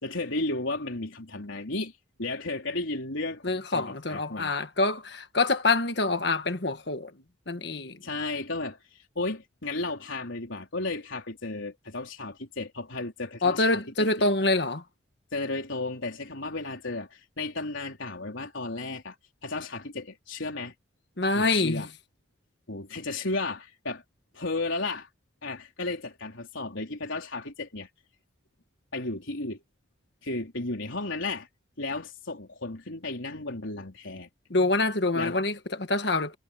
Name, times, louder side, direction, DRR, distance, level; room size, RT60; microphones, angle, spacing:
voice 1, 0.0-4.5 8.0-13.8 14.2-14.3 15.3-19.2 19.4-20.7 21.3-21.9 22.7-24.0 24.3-25.1 25.4-27.9 28.9-29.6 30.2-31.5 31.8-34.3 35.1-35.4, left 2 dB, 80° left, 3.9 m, -34 dB
voice 2, 3.4-7.1 7.5-8.0 13.4-14.8 21.2-21.9 34.5-36.3, left 2 dB, 60° left, 1.6 m, -26 dB
head